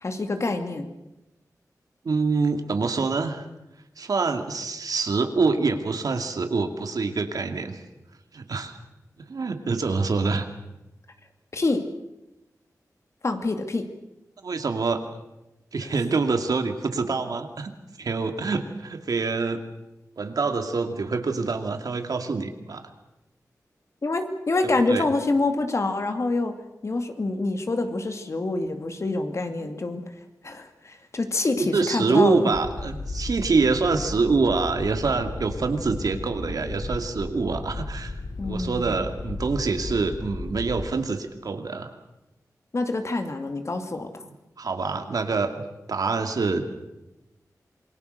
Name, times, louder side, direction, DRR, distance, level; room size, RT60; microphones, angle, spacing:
voice 1, 0.0-0.9 11.5-11.8 13.2-13.9 24.0-26.6 26.8-30.0 30.4-32.5 38.4-38.9 42.7-44.1, left 2 dB, 50° left, 6 dB, 2.4 m, -26 dB
voice 2, 2.0-3.5 4.0-7.8 8.3-8.8 9.2-10.5 14.4-15.0 15.7-17.7 18.0-19.6 20.2-22.9 24.9-25.1 29.6-29.7 31.6-38.1 38.4-41.9 44.2-44.3 44.6-46.6, right 4 dB, 75° right, 6 dB, 2.3 m, -25 dB
sound 1, 32.5-40.9, left 2 dB, 65° left, 3.2 m, -35 dB
27.5 x 22.0 x 6.6 m, 0.96 s
wide cardioid pair, 115°, 6 cm